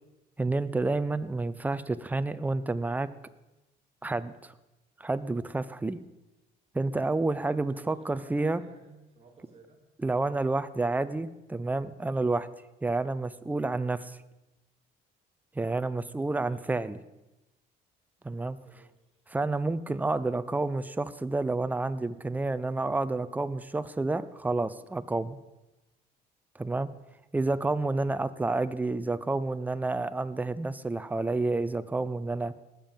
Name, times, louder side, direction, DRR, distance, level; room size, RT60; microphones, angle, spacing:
voice 1, 0.4-3.1 4.0-4.5 5.0-6.0 6.7-8.6 10.0-12.5 12.8-14.2 15.6-17.0 18.2-18.6 19.3-25.4 26.6-26.9 27.3-32.5, right 2 dB, 10° right, 13 dB, 0.6 m, -29 dB
voice 2, 7.4-9.8 16.0-16.7 18.2-18.9, right 4 dB, 35° right, -1 dB, 2.4 m, -56 dB
19.5 x 7.4 x 5.4 m, 0.99 s
cardioid pair, 110°, 17 cm